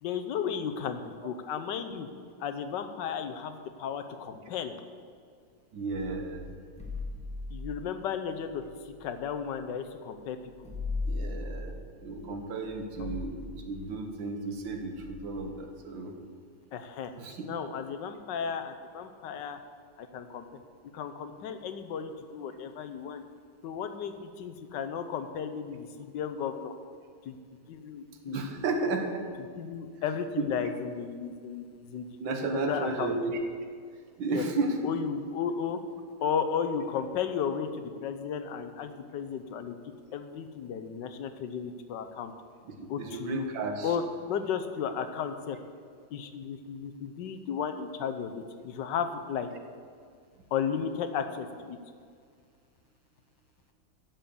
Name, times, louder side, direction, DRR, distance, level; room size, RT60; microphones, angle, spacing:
voice 1, 0.0-2.1 2.4-4.7 7.5-8.6 9.0-10.4 13.0-13.1 16.7-17.1 17.4-19.6 20.0-20.4 20.9-23.2 23.6-26.7 27.2-27.4 27.7-28.4 29.6-31.6 31.9-32.0 32.5-33.2 34.3-34.4 34.8-35.8 36.2-39.7 40.1-42.3 42.9-43.4 43.8-44.0 44.3-45.6 46.1-49.5 50.5-51.8, left 7 dB, 70° left, 8 dB, 1.4 m, -34 dB
voice 2, 5.7-6.4 11.1-13.4 13.7-16.1 17.2-17.6 28.3-29.3 30.4-30.5 32.2-33.4 34.2-34.8 42.7-44.0, right 3 dB, 75° right, 4 dB, 1.9 m, -33 dB
sound 1, 5.9-9.8 10.1-10.2 10.4-15.5, left 3 dB, 5° left, 1.2 m, -39 dB
11.0 x 7.4 x 7.0 m, 2.1 s
omnidirectional pair, 2.1 m